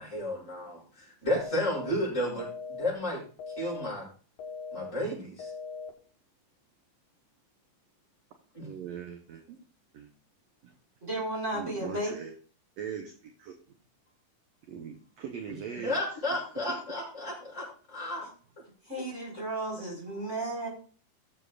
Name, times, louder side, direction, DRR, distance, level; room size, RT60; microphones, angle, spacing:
voice 1, 0.0-4.1 4.7-5.5 8.5-8.7 15.7-18.3, left 1 dB, 20° left, -6 dB, 6.8 m, -33 dB
sound 1, 1.4-1.9 2.4-2.9 3.4-3.9 4.4-4.9 5.4-5.9, left 5 dB, 65° left, 3.1 m, -40 dB
voice 2, 8.6-9.4 9.9-10.1 10.6-10.7 11.5-12.3 12.8-13.1 13.4-13.5 14.7-16.0 16.7-16.8, right 7 dB, 65° right, 4 dB, 1.8 m, -40 dB
voice 3, 11.0-12.1 18.8-20.7, right 1 dB, 20° right, -3 dB, 5.0 m, -34 dB
19.0 x 7.5 x 2.4 m, 0.40 s
omnidirectional pair, 3.6 m